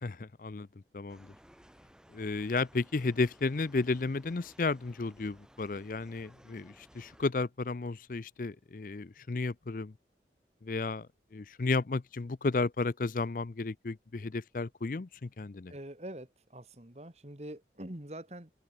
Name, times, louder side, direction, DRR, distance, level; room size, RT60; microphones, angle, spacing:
voice 1, 0.0-0.7 0.9-1.3 2.1-9.9 10.6-11.1 11.3-15.7, left 3 dB, 50° left, 0.5 m, -33 dB
sound 1, 1.1-7.3, equal, 5° right, 6.3 m, -59 dB
voice 2, 15.7-18.5, right 1 dB, 40° right, 2.0 m, -44 dB
head